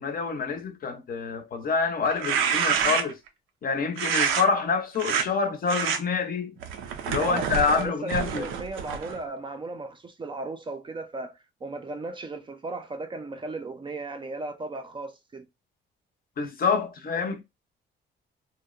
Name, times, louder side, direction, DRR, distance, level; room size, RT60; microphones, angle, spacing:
voice 1, 0.0-3.2 3.6-6.6 7.1-8.5 16.4-17.4, left 5 dB, 45° left, 0.6 m, -27 dB
sound 1, 2.1-3.3 4.0-4.4 5.0-5.3 5.7-6.0 6.6-9.2, right 7 dB, 90° right, 0.5 m, -27 dB
voice 2, 7.2-11.3 11.6-15.4, right 2 dB, 25° right, 0.4 m, -36 dB
2.8 x 2.1 x 2.3 m
cardioid pair, 90°, 20 cm